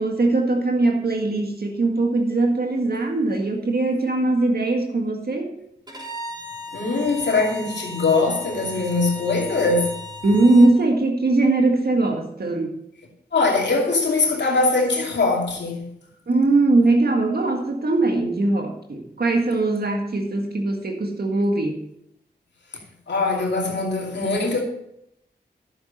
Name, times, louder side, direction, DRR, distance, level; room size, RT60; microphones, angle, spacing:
voice 1, 0.0-5.5 10.2-12.7 16.3-21.8, right 2 dB, 60° right, 1.8 m, -20 dB
Bowed string instrument, 5.9-10.8, left 1 dB, 25° right, 3.7 m, -37 dB
voice 2, 6.7-10.0 13.3-15.9 23.1-24.6, left 3 dB, 85° left, 2.5 m, -22 dB
11.0 x 7.2 x 5.2 m
cardioid pair, 40°, 18 cm